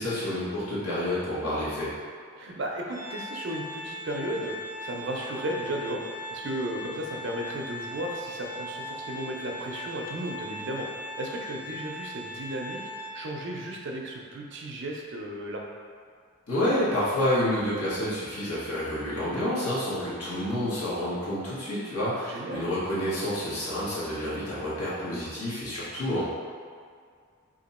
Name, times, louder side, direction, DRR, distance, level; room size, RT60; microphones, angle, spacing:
voice 1, 0.0-1.9 16.5-26.3, left 1 dB, 85° left, -10 dB, 1.3 m, -29 dB
voice 2, 2.4-6.0 6.3-10.9 11.2-15.6 22.3-22.7, right 1 dB, 55° right, 0 dB, 0.5 m, -34 dB
Organ, 2.9-13.6, left 1 dB, 20° left, 1.0 m, -39 dB
2.9 x 2.6 x 4.1 m, 2.1 s
head